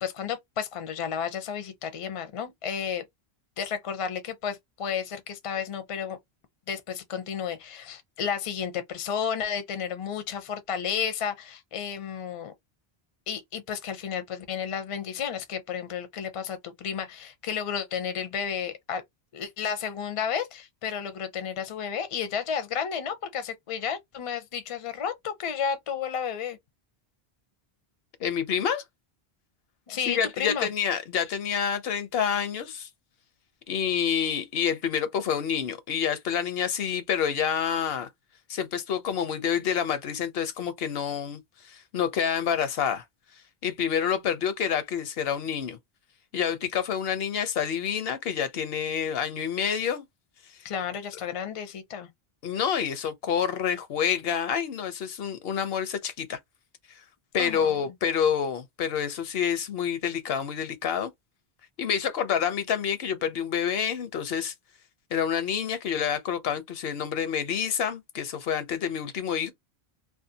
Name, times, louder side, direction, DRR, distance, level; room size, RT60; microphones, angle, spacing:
voice 1, 0.0-3.0 3.6-6.2 6.7-12.5 13.3-19.0 19.3-26.6 29.9-30.7 50.6-52.1 57.3-57.7, left 7 dB, 45° left, 0.5 m, -32 dB
voice 2, 28.2-28.8 30.1-32.9 33.7-38.1 38.5-43.0 43.6-45.8 46.3-50.0 52.4-56.4 57.3-61.1 61.8-64.5 65.1-69.5, left 8 dB, 75° left, 0.8 m, -28 dB
2.6 x 2.2 x 2.6 m
omnidirectional pair, 1.1 m